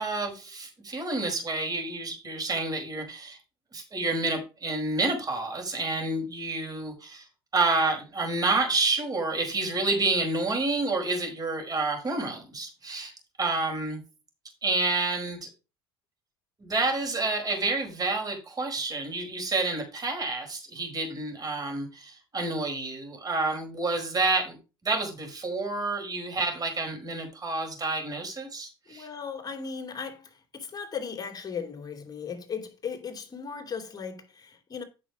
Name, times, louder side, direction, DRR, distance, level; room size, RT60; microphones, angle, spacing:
voice 1, 0.0-3.4 3.7-7.3 7.5-13.1 13.4-14.0 14.6-15.5 16.6-24.6 24.8-29.1, right 3 dB, 30° right, 4.9 m, -29 dB
voice 2, 28.9-34.8, left 6 dB, 30° left, 2.9 m, -37 dB
9.1 x 6.2 x 4.9 m
hypercardioid pair, 80°, 13 cm